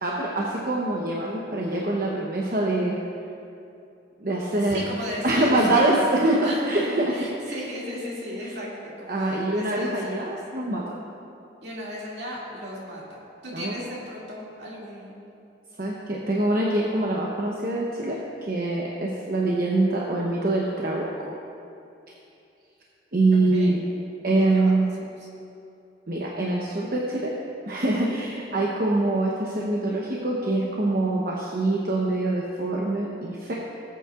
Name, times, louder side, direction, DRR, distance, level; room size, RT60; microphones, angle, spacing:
voice 1, 0.0-3.0 4.2-4.9 5.2-7.1 7.5-7.6 8.4-8.5 9.1-10.8 13.5-13.8 15.8-18.2 18.5-21.3 23.1-23.8 24.2-24.9 26.1-27.3 27.7-33.5, right 2 dB, 50° right, -3 dB, 0.9 m, -24 dB
voice 2, 4.6-6.0 6.4-10.4 11.6-15.2 23.5-23.8 24.3-24.9 25.2-25.3, equal, 65° right, -5 dB, 2.5 m, -36 dB
19.5 x 8.4 x 2.5 m, 2.7 s
head